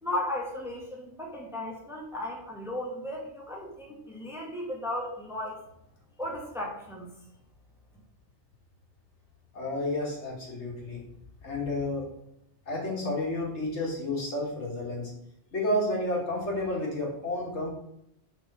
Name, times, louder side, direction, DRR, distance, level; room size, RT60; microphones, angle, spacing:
voice 1, 0.0-5.6 6.2-7.1, left 1 dB, ahead, -2 dB, 1.2 m, -35 dB
voice 2, 9.5-11.0 11.4-12.1 12.7-15.1 15.5-17.7, left 1 dB, 75° left, -2 dB, 1.9 m, -31 dB
4.8 x 3.8 x 5.4 m, 0.77 s
omnidirectional pair, 1.2 m